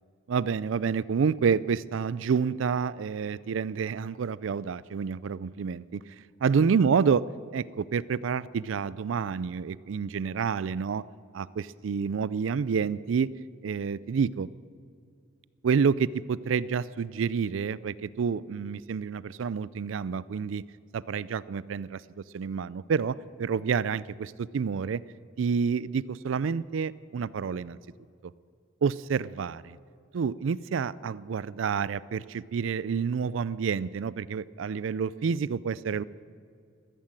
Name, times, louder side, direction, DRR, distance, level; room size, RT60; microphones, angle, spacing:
voice 1, 0.3-6.0 6.4-7.2 7.5-11.0 11.3-13.3 13.6-14.5 15.6-20.6 20.9-25.0 25.4-27.8 28.8-29.8 30.1-36.0, right 6 dB, 75° right, 20 dB, 0.4 m, -28 dB
14.0 x 13.0 x 7.5 m, 2.3 s
head